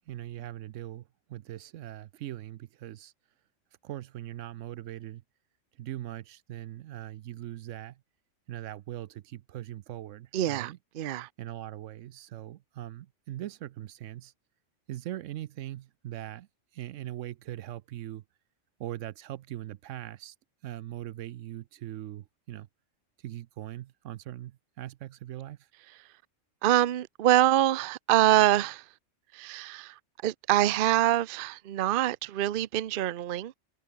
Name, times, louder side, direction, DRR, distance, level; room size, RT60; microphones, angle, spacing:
voice 1, 0.1-3.1 3.8-5.2 5.8-8.0 8.5-10.8 11.4-14.3 14.9-16.5 16.7-18.2 18.8-20.3 20.6-22.7 23.2-25.6, right 13 dB, 75° right, 0.9 m, -40 dB
voice 2, 10.3-11.3 26.6-28.8 29.3-29.9 30.2-33.5, right 13 dB, 55° right, 0.7 m, -25 dB
omnidirectional pair, 1.3 m